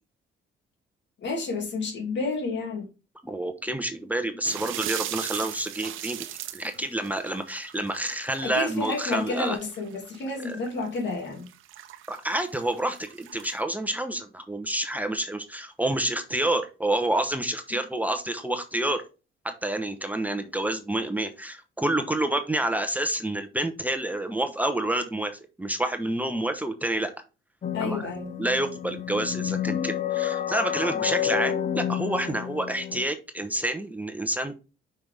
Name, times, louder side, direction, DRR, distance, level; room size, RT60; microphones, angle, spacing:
voice 1, 1.2-2.9 8.4-11.5 27.7-28.3 31.0-31.1, left 3 dB, 65° left, 2.4 m, -30 dB
voice 2, 3.2-6.3 6.5-9.6 10.4-10.6 12.1-19.0 19.4-27.1 27.8-28.0 28.4-34.5, right 1 dB, 10° right, 1.0 m, -28 dB
sound 1, 4.4-13.6, right 12 dB, 85° right, 0.8 m, -39 dB
sound 2, 27.6-33.0, left 10 dB, 35° left, 0.7 m, -30 dB
5.6 x 5.6 x 3.4 m
cardioid pair, 90°, 20 cm